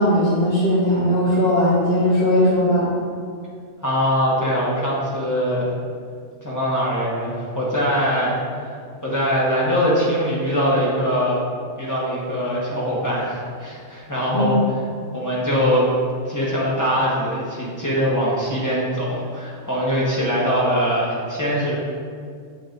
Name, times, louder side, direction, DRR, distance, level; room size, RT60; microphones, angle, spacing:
voice 1, 0.0-2.9 14.3-14.5, equal, 55° left, -9 dB, 1.3 m, -18 dB
voice 2, 3.8-5.7 6.4-8.7 9.0-11.4 11.8-14.6 15.1-15.9 16.3-21.8, equal, 15° left, -7 dB, 1.2 m, -22 dB
7.3 x 3.5 x 3.8 m, 2.2 s
omnidirectional pair, 1.3 m